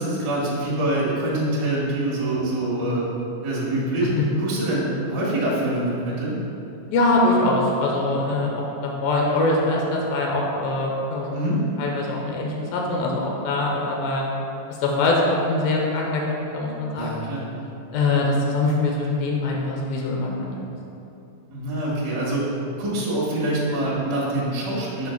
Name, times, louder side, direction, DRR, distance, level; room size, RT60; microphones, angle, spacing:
voice 1, 0.0-3.0 3.4-6.4 11.3-11.6 16.9-17.5 21.5-22.5 22.8-25.1, right 1 dB, 45° right, -7 dB, 1.6 m, -25 dB
voice 2, 6.9-14.3 14.8-17.1 17.9-20.7, left 2 dB, 90° left, -1 dB, 2.6 m, -23 dB
5.0 x 4.4 x 5.8 m, 2.8 s
omnidirectional pair, 4.1 m